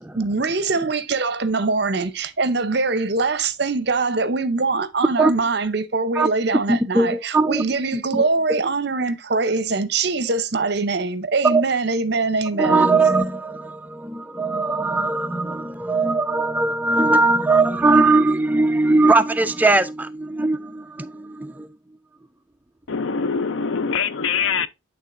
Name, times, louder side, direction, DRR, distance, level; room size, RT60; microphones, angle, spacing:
voice 1, 0.1-13.0, right 3 dB, 55° right, 0.7 m, -23 dB
voice 2, 6.7-7.6 8.1-8.2 11.4-11.6 12.6-21.7, right 3 dB, 10° right, 0.3 m, -20 dB
voice 3, 22.9-24.7, left 5 dB, 75° left, 0.6 m, -23 dB
11.0 x 3.6 x 2.5 m
head